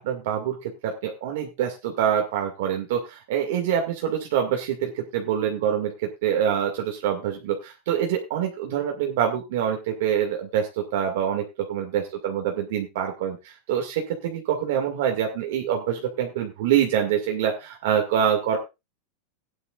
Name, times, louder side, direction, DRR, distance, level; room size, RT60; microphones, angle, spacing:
voice 1, 0.0-18.6, right 9 dB, 65° right, 2 dB, 2.1 m, -25 dB
17.5 x 9.6 x 2.5 m, 0.25 s
supercardioid pair, 160°, 0 cm